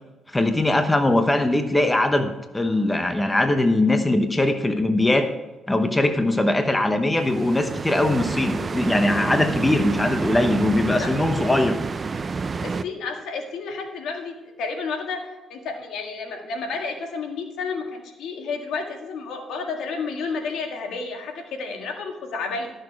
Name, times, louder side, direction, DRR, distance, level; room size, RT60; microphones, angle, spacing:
voice 1, 0.3-5.3 5.7-11.8, left 1 dB, 15° left, 7 dB, 1.0 m, -21 dB
sound 1, 7.2-12.8, right 4 dB, 35° right, 0.5 m, -29 dB
voice 2, 12.6-15.2 15.5-22.7, left 4 dB, 80° left, 3 dB, 1.8 m, -31 dB
13.0 x 6.5 x 4.8 m, 1.1 s
cardioid pair, 90°, 0 cm